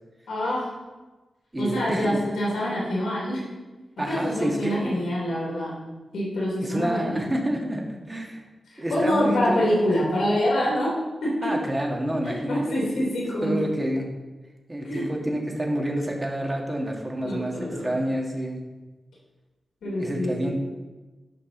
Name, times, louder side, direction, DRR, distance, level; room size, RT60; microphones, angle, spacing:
voice 1, 0.3-0.7 1.6-3.4 4.1-5.8 6.1-7.2 8.7-10.9 11.2-11.5 12.2-13.5 14.8-15.0 17.2-17.9 19.8-20.5, equal, 85° left, -5 dB, 3.1 m, -26 dB
voice 2, 1.5-2.2 4.0-5.0 6.6-8.4 8.8-10.1 11.4-12.9 13.4-14.1 14.7-18.6 19.9-20.5, right 1 dB, 25° right, 0 dB, 1.9 m, -28 dB
11.0 x 5.4 x 4.0 m, 1.2 s
cardioid pair, 55°, 0 cm